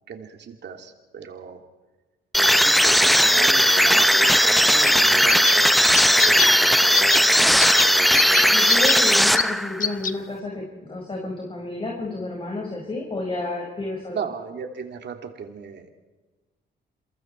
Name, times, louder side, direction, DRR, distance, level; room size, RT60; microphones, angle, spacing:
voice 1, 0.1-1.6 2.5-7.9 14.1-15.9, right 6 dB, 60° right, 5 dB, 2.7 m, -37 dB
sound 1, 2.3-9.9, equal, ahead, 0.8 m, -17 dB
sound 2, 4.8-5.0 5.3-5.6 5.9-6.5 6.9-7.2 7.6-7.9 8.1-9.0 9.3-9.4 9.8-10.1, left 7 dB, 40° left, 1.2 m, -24 dB
voice 2, 8.5-14.2, left 2 dB, 25° left, -1 dB, 5.2 m, -31 dB
29.0 x 22.5 x 4.5 m, 1.2 s
cardioid pair, 90°, 20 cm